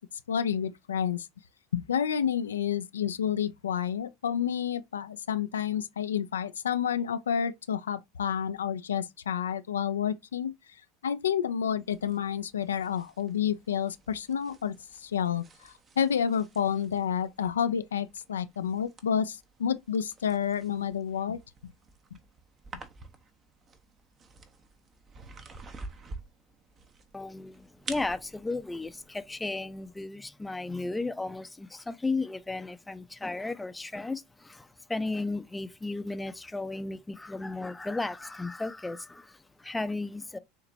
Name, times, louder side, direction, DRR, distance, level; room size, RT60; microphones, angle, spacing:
voice 1, 0.3-1.3 1.7-10.5 11.0-21.7, left 8 dB, 80° left, 0.4 m, -30 dB
sound 1, 11.8-30.0, right 3 dB, 35° right, 1.0 m, -50 dB
voice 2, 27.1-40.4, left 3 dB, 10° left, 0.6 m, -34 dB
6.8 x 2.9 x 2.6 m
hypercardioid pair, 75°, 0 cm